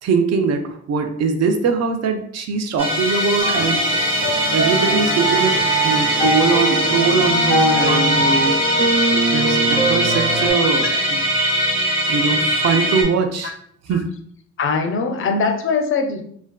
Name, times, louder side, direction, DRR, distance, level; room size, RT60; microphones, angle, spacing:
voice 1, 0.0-3.8 4.5-5.5 5.8-8.6 9.3-11.2 12.1-13.5 13.9-14.0, right 5 dB, 60° right, 6 dB, 0.4 m, -21 dB
Musical instrument, 2.8-13.0, equal, 20° right, 0.8 m, -21 dB
sound 1, 3.4-10.5, right 1 dB, 80° right, 1.4 m, -22 dB
voice 2, 10.4-11.0 13.4-13.6 14.6-16.2, left 4 dB, 45° left, 6 dB, 0.4 m, -23 dB
2.5 x 2.2 x 2.2 m, 0.63 s
cardioid pair, 95°, 30 cm